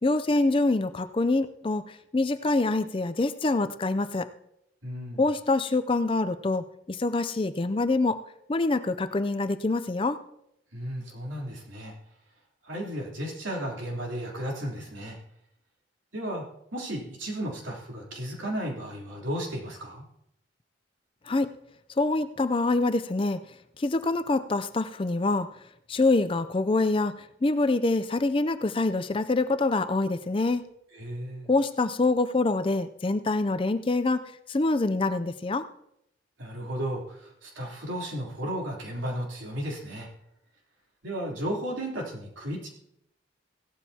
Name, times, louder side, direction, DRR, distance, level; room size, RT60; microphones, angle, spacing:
voice 1, 0.0-4.3 5.2-8.2 8.5-10.2 21.3-21.5 22.0-23.4 23.8-25.5 25.9-30.6 31.5-35.7, left 2 dB, 25° left, 12 dB, 0.4 m, -25 dB
voice 2, 4.8-5.2 10.7-11.9 12.6-15.2 16.1-16.4 16.7-20.0 30.9-31.5 36.4-40.1 41.0-42.7, equal, 85° right, -2 dB, 3.3 m, -34 dB
17.0 x 12.5 x 2.8 m, 0.78 s
head